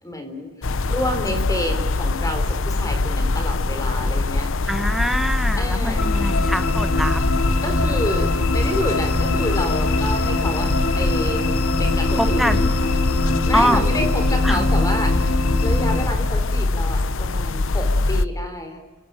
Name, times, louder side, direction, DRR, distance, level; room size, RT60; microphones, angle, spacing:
voice 1, 0.0-4.7 5.5-6.0 7.6-11.5 11.8-12.7 13.4-18.8, left 1 dB, 15° left, 6 dB, 3.7 m, -29 dB
sound 1, 0.6-18.3, left 3 dB, 60° left, 0.7 m, -23 dB
voice 2, 4.7-7.2 12.2-12.6 13.5-13.8 14.4-14.7, equal, ahead, 8 dB, 1.2 m, -23 dB
sound 2, 6.0-16.1, left 2 dB, 80° left, 2.7 m, -23 dB
28.5 x 17.0 x 9.0 m, 1.4 s
head